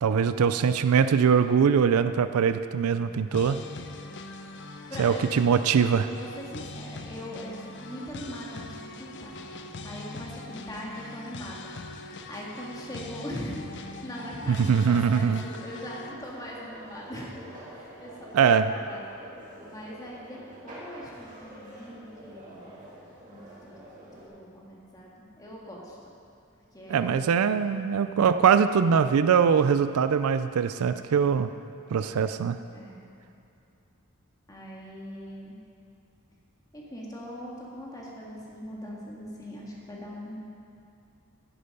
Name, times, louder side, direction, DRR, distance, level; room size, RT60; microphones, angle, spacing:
voice 1, 0.0-3.6 5.0-6.1 14.5-15.4 18.3-18.7 26.9-31.5 31.9-32.6, right 6 dB, 85° right, 11 dB, 0.4 m, -22 dB
sound 1, 3.3-16.1, left 2 dB, 55° left, 0.6 m, -42 dB
voice 2, 4.9-5.2 6.2-9.4 9.8-11.7 12.3-19.0 19.6-22.8 23.3-23.7 24.2-26.0 26.7-27.2 32.7-33.0 34.5-35.6 36.7-40.4, equal, 15° left, -4 dB, 1.9 m, -41 dB
sound 2, 16.0-24.3, right 1 dB, 35° right, 2.3 m, -47 dB
10.0 x 9.8 x 5.4 m, 2.7 s
head